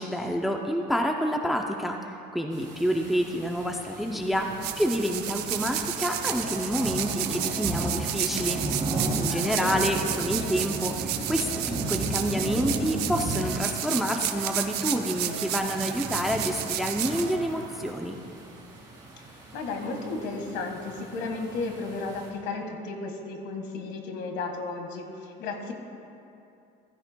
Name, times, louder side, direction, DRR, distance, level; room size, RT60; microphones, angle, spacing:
voice 1, 0.0-8.6 9.2-18.2, equal, ahead, 2 dB, 0.4 m, -28 dB
sound 1, 2.5-22.3, right 2 dB, 20° right, 2.6 m, -36 dB
sound 2, 4.3-17.9, right 11 dB, 65° right, 0.7 m, -32 dB
sound 3, 6.3-17.5, equal, 40° left, 2.3 m, -46 dB
voice 2, 9.3-9.9 19.5-25.7, left 3 dB, 70° left, 4 dB, 1.6 m, -34 dB
15.5 x 14.5 x 2.2 m, 2.6 s
cardioid pair, 165°, 18 cm